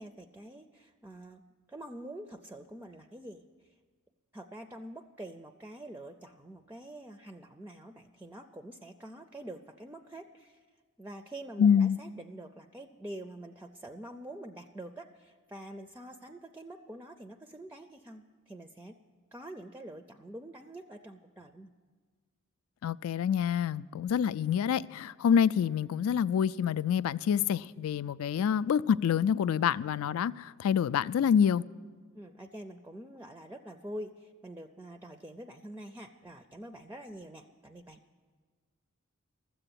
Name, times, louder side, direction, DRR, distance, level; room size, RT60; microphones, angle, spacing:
voice 1, 0.0-1.4 1.7-3.7 4.3-10.6 11.0-19.0 19.3-21.7 28.3-28.5 32.1-38.0, right 1 dB, 10° right, 0.4 m, -46 dB
voice 2, 11.6-12.0 22.8-31.6, left 8 dB, 70° left, 0.3 m, -27 dB
13.5 x 7.8 x 9.9 m
head